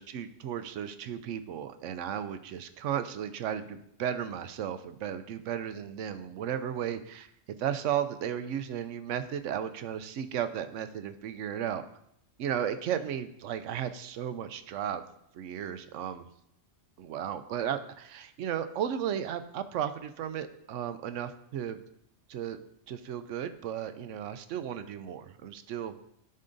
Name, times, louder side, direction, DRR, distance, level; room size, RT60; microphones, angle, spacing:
voice 1, 0.0-7.3 7.6-11.8 12.4-15.0 15.3-16.3 17.0-21.8 22.3-22.6 22.9-25.9, right 9 dB, 80° right, 11 dB, 0.9 m, -34 dB
12.0 x 5.4 x 2.6 m, 0.74 s
omnidirectional pair, 1.3 m